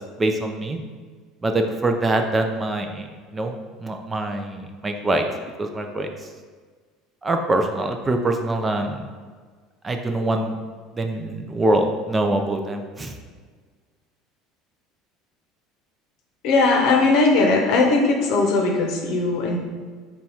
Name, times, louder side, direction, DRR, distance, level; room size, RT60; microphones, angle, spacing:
voice 1, 0.2-0.8 1.4-3.1 3.3-5.2 5.6-6.1 7.2-9.0 9.8-10.6 11.0-13.1, right 2 dB, 20° right, 5 dB, 0.4 m, -24 dB
voice 2, 16.4-19.6, left 3 dB, 65° left, 1 dB, 0.7 m, -19 dB
3.9 x 2.4 x 4.4 m, 1.6 s
hypercardioid pair, 80°, 0 cm